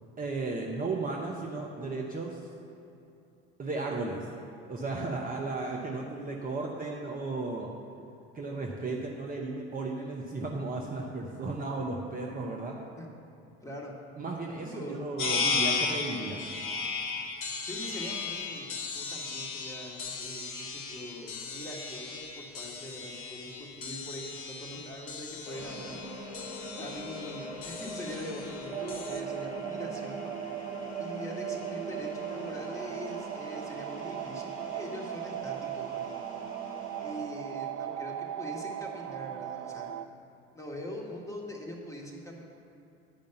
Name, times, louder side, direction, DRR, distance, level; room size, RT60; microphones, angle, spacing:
voice 1, 0.2-2.5 3.6-4.3 4.7-7.7 8.3-12.8 14.2-16.5, right 3 dB, 25° right, -1 dB, 0.9 m, -34 dB
voice 2, 13.6-13.9 14.6-15.0 17.6-18.7 18.9-26.0 26.8-30.3 31.0-36.2 37.0-40.0 40.5-42.4, left 1 dB, 10° left, -2 dB, 1.7 m, -42 dB
sound 1, 15.2-29.2, left 4 dB, 55° left, 1.1 m, -36 dB
sound 2, 25.4-37.2, left 1 dB, 75° left, 1.2 m, -43 dB
sound 3, 28.7-40.1, right 11 dB, 50° right, 0.4 m, -38 dB
9.5 x 5.2 x 6.8 m, 2.7 s
figure-of-eight pair, 60°, 32 cm